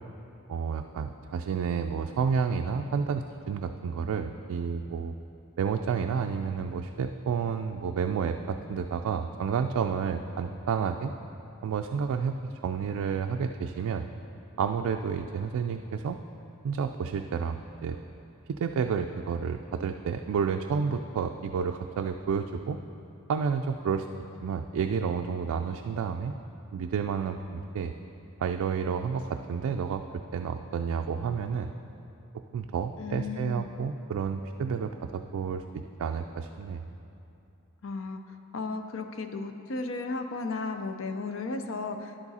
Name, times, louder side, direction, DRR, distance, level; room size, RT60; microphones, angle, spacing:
voice 1, 0.5-5.1 5.6-11.1 11.6-14.1 14.6-16.2 16.6-18.0 18.5-22.8 23.3-24.1 24.4-26.3 26.7-27.9 28.4-30.0 30.3-31.7 32.5-35.6 36.0-36.8, right 6 dB, 80° right, 5 dB, 0.3 m, -30 dB
voice 2, 33.0-33.7 37.8-38.2 38.5-42.1, left 3 dB, 65° left, 7 dB, 0.5 m, -34 dB
10.5 x 7.2 x 4.1 m, 2.7 s
head